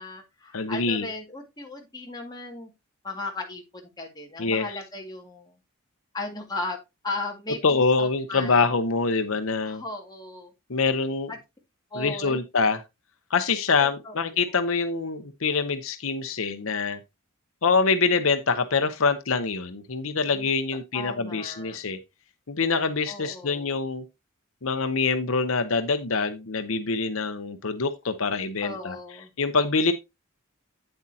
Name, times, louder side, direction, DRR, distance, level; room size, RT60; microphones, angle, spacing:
voice 1, 0.0-2.7 3.0-5.5 6.1-6.8 7.0-8.7 9.6-10.5 11.9-12.4 14.1-14.2 20.3-20.5 20.9-21.8 23.1-23.8 28.6-29.3, left 2 dB, 20° left, 2.2 m, -36 dB
voice 2, 0.5-1.1 4.4-4.8 7.6-9.8 10.7-11.3 11.9-12.8 13.3-17.0 17.6-22.0 22.5-24.0 24.6-29.0 29.4-29.9, left 4 dB, 70° left, 0.8 m, -25 dB
8.8 x 8.0 x 2.8 m
head